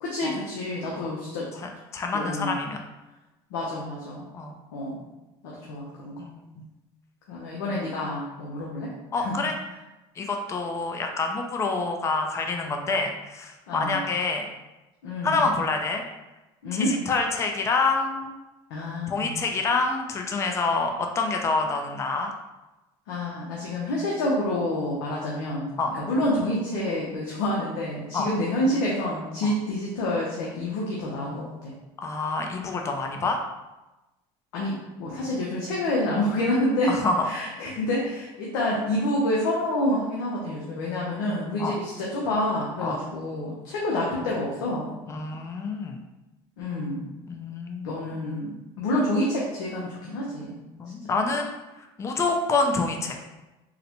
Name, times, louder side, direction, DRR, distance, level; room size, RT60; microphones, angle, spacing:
voice 1, 0.0-1.5 2.1-2.6 3.5-4.3 4.7-5.0 5.7-6.2 7.3-9.3 13.7-14.0 15.0-15.4 16.6-16.9 18.7-19.4 23.1-25.7 25.9-31.7 34.5-34.7 35.0-36.9 37.2-44.9 46.6-47.1 47.8-50.6, left 1 dB, 85° left, -4 dB, 0.7 m, -28 dB
voice 2, 1.5-2.8 4.3-4.5 6.2-6.6 9.1-9.5 10.2-14.5 15.2-16.0 16.7-18.3 19.1-22.3 25.8-25.9 28.1-28.3 29.4-29.5 32.0-33.4 36.9-37.3 41.6-41.7 42.8-43.0 45.1-46.0 47.3-47.9 50.8-51.5 52.0-53.2, left 3 dB, 20° left, 3 dB, 0.4 m, -27 dB
3.9 x 2.1 x 2.9 m, 1.0 s
supercardioid pair, 100°, 13 cm